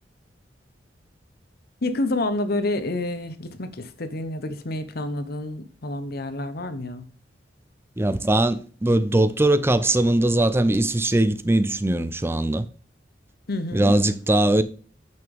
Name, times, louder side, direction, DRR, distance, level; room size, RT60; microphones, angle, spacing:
voice 1, 1.8-7.0 13.5-13.9, left 2 dB, 60° left, 0.9 m, -28 dB
voice 2, 8.0-12.7 13.7-14.6, right 1 dB, 15° right, 0.5 m, -20 dB
8.9 x 6.0 x 3.5 m
head